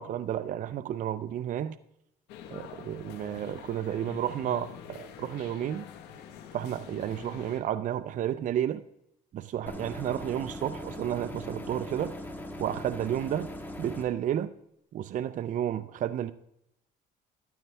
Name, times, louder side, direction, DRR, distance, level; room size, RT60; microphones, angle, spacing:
voice 1, 0.0-1.8 2.5-5.9 6.5-8.8 9.3-12.1 12.6-13.5 13.8-14.5 14.9-16.3, right 10 dB, 50° right, 13 dB, 0.5 m, -31 dB
sound 1, 2.3-7.6, left 8 dB, 90° left, 1.4 m, -45 dB
sound 2, 9.7-14.1, left 1 dB, 10° left, 1.6 m, -40 dB
13.5 x 12.0 x 3.4 m, 0.79 s
cardioid pair, 110°, 17 cm